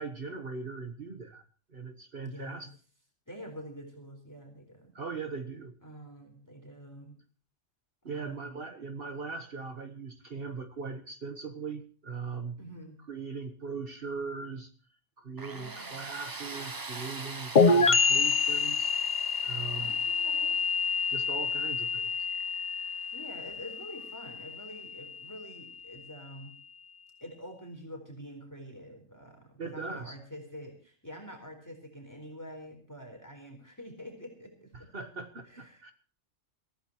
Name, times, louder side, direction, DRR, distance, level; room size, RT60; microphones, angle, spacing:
voice 1, 0.0-1.4 1.7-2.7 4.9-5.7 8.0-12.6 13.1-14.7 15.2-18.9 19.4-19.9 21.1-22.1 29.6-30.2 34.7-35.9, right 4 dB, 50° right, 8 dB, 1.4 m, -39 dB
voice 2, 2.2-2.7 3.3-4.9 5.8-7.2 8.0-8.6 12.6-13.0 15.5-15.9 19.8-20.6 23.1-26.5 27.2-34.9 35.5-35.9, equal, 15° left, 3 dB, 4.1 m, -46 dB
Tools, 15.4-24.1, right 3 dB, 20° right, 0.6 m, -45 dB
sound 1, 17.6-25.1, left 4 dB, 40° left, 0.9 m, -27 dB
23.0 x 15.5 x 3.0 m, 0.41 s
omnidirectional pair, 1.3 m